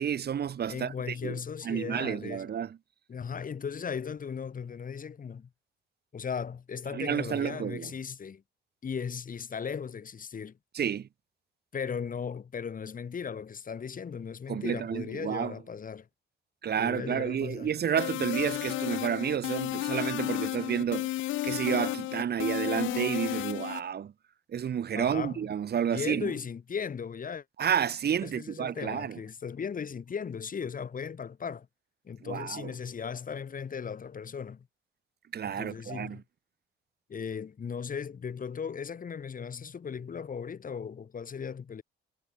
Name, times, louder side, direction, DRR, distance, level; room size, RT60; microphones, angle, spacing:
voice 1, 0.0-1.4 1.6-2.8 6.9-7.9 10.7-11.1 14.5-15.5 16.6-21.1 21.4-24.1 24.5-26.3 27.6-29.2 32.2-32.7 35.3-36.2, right 8 dB, 55° right, 2.2 m, -30 dB
voice 2, 0.7-2.5 3.1-5.5 6.1-8.4 8.8-10.5 11.7-16.1 16.8-17.7 24.9-25.4 25.9-27.4 28.2-31.7 32.0-34.7 35.4-36.2 37.1-41.8, left 6 dB, 45° left, 3.2 m, -37 dB
sound 1, 18.0-23.8, left 16 dB, 75° left, 0.5 m, -32 dB
cardioid pair, 90°, 20 cm